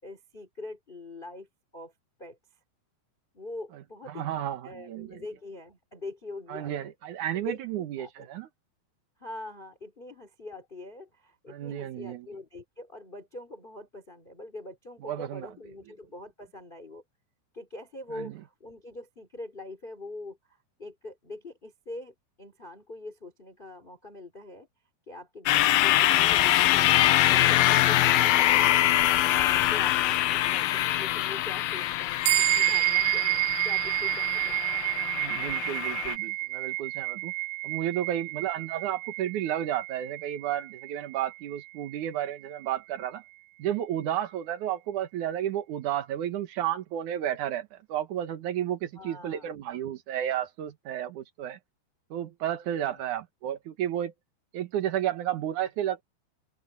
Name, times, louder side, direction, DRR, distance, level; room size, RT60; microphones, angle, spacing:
voice 1, 0.0-1.5 1.7-1.9 2.2-2.4 3.3-4.3 4.6-6.9 7.3-8.5 9.2-17.0 17.5-24.7 25.1-27.0 29.3-34.6 48.9-49.6 52.8-53.0, left 2 dB, 15° left, 2.9 m, -43 dB
voice 2, 4.1-5.2 6.5-8.5 11.5-12.3 15.0-15.5 18.1-18.3 35.0-37.3 37.6-43.2 43.6-51.6 52.1-54.1 54.5-56.0, right 11 dB, 65° right, 2.0 m, -32 dB
sound 1, 25.5-36.2, left 14 dB, 75° left, 2.2 m, -24 dB
sound 2, 32.2-42.0, right 22 dB, 85° right, 2.9 m, -29 dB
open air
omnidirectional pair, 5.1 m